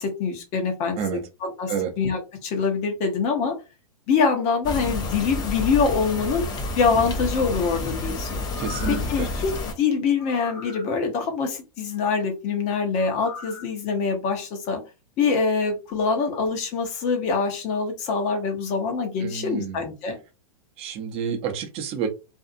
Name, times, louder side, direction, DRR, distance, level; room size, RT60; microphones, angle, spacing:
voice 1, 0.0-3.5 4.1-6.5 6.8-8.4 8.9-9.5 9.8-14.8 15.2-20.1, left 5 dB, 40° left, 4 dB, 1.0 m, -24 dB
sound 1, 4.6-9.7, left 2 dB, 20° left, 0.5 m, -29 dB
sound 2, 8.4-9.2 10.2-10.9 13.0-13.7 14.1-14.2, left 5 dB, 70° left, 1.0 m, -40 dB
voice 2, 8.6-9.3 19.2-19.8 20.8-22.1, right 7 dB, 30° right, 5 dB, 0.7 m, -29 dB
2.7 x 2.4 x 2.5 m, 0.29 s
hypercardioid pair, 125°, 19 cm